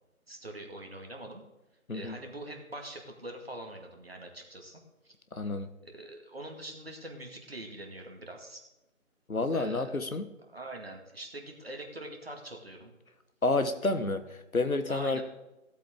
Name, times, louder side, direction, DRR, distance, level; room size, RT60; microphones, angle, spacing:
voice 1, 0.3-1.4 1.9-5.1 5.9-8.6 9.5-9.9 10.5-12.9 14.9-15.2, right 1 dB, 45° right, 2 dB, 2.1 m, -43 dB
voice 2, 5.3-5.7 9.3-10.3 13.4-15.2, left 2 dB, 80° left, 10 dB, 1.3 m, -29 dB
17.0 x 8.1 x 3.7 m, 0.96 s
figure-of-eight pair, 170°, 42 cm